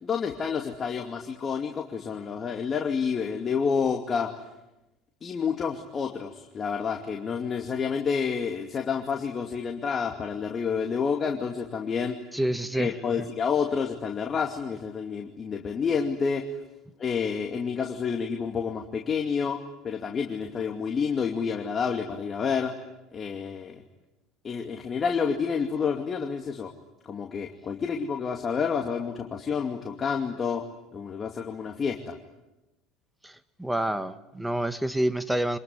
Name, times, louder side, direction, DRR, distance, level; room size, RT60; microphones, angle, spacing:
voice 1, 0.0-4.3 5.2-12.2 12.7-16.5 17.0-22.7 23.1-23.8 24.4-26.7 27.0-30.6 30.9-32.2, left 6 dB, 35° left, 2 dB, 2.5 m, -29 dB
voice 2, 12.3-12.9 33.2-33.3 33.6-35.6, right 1 dB, 5° right, 11 dB, 1.7 m, -27 dB
26.5 x 21.0 x 9.7 m, 0.98 s
hypercardioid pair, 80°, 0 cm